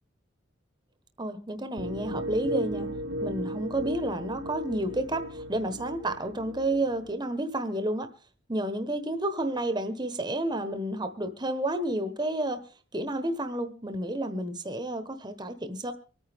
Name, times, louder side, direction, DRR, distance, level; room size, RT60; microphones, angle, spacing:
voice 1, 1.2-2.9 3.2-8.1 8.5-12.6 12.9-15.9, right 1 dB, 20° right, 1.2 m, -30 dB
sound 1, 1.8-7.1, right 1 dB, 75° right, 1.0 m, -36 dB
25.0 x 9.1 x 3.6 m
head